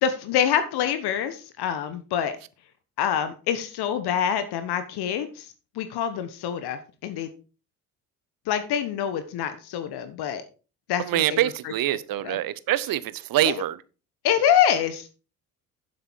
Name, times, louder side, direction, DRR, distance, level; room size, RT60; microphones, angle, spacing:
voice 1, 0.0-2.4 3.0-5.5 5.8-7.3 8.5-10.4 10.9-12.4 13.4-13.5 14.2-15.1, left 9 dB, 60° left, 1.2 m, -26 dB
voice 2, 11.0-13.8, right 14 dB, 50° right, 0.9 m, -25 dB
9.5 x 7.5 x 4.5 m
hypercardioid pair, 55°, 45 cm